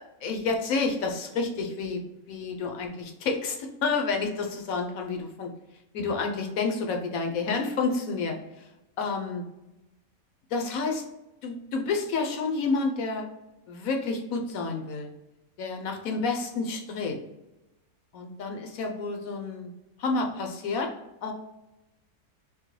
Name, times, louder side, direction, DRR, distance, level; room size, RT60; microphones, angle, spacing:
voice 1, 0.0-5.5 5.9-8.7 9.0-9.5 10.5-11.0 11.4-13.3 13.7-15.1 15.6-17.2 18.1-19.7 20.0-20.9 21.2-21.3, left 4 dB, 70° left, 3 dB, 1.1 m, -29 dB
3.7 x 3.4 x 3.1 m, 0.96 s
omnidirectional pair, 1.7 m